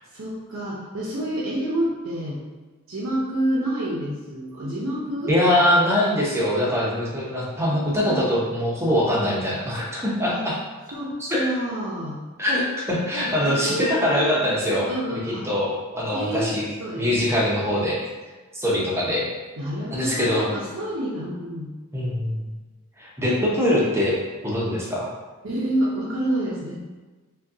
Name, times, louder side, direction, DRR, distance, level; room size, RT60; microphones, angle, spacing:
voice 1, 0.1-2.4 2.9-5.3 7.7-8.2 10.3-10.4 10.9-12.2 13.5-14.3 14.9-15.5 16.1-17.2 19.6-21.7 25.4-26.8, right 1 dB, 65° right, -5 dB, 0.6 m, -28 dB
voice 2, 5.3-10.5 11.2-11.5 12.4-14.9 15.3-16.7 17.0-18.0 18.5-19.3 19.9-20.5 21.9-22.5 23.0-24.1 24.4-25.1, left 1 dB, 10° right, -5 dB, 0.7 m, -23 dB
5.1 x 2.2 x 2.7 m, 1.3 s
head